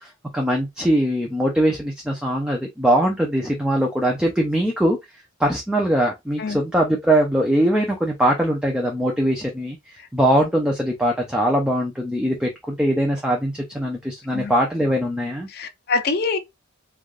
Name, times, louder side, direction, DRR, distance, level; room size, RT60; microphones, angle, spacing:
voice 1, 0.0-5.0 5.4-15.5, right 1 dB, 5° right, 0.4 m, -21 dB
voice 2, 15.5-16.4, left 4 dB, 50° left, 0.5 m, -25 dB
3.3 x 2.4 x 2.5 m
head